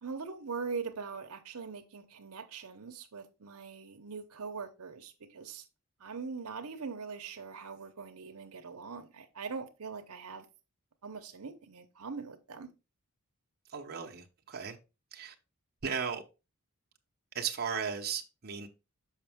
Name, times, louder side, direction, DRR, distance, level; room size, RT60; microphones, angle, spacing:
voice 1, 0.0-5.6 6.0-10.5 11.0-12.7, right 5 dB, 75° right, 0.8 m, -42 dB
voice 2, 13.7-14.8 15.1-15.3 15.8-16.2 17.3-18.7, right 6 dB, 45° right, 0.8 m, -36 dB
6.5 x 5.2 x 3.5 m
head